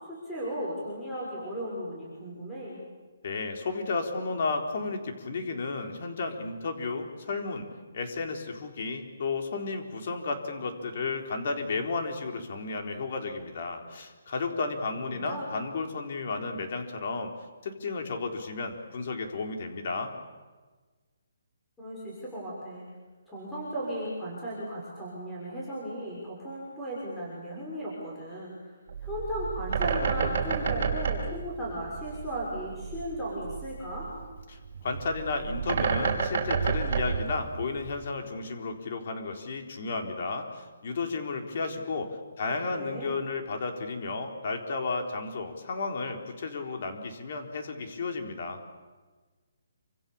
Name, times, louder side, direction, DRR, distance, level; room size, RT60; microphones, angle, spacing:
voice 1, 0.1-2.8 15.1-15.5 21.8-22.8 23.3-28.5 29.0-34.1 42.4-43.1, equal, 5° left, -7 dB, 6.2 m, -36 dB
voice 2, 3.2-7.7 7.9-17.3 17.6-20.1 34.5-48.6, left 3 dB, 40° left, 4 dB, 4.0 m, -33 dB
Bird, 28.9-38.0, right 6 dB, 40° right, 5.4 m, -30 dB
28.0 x 26.0 x 7.2 m, 1.3 s
hypercardioid pair, 175°, 0 cm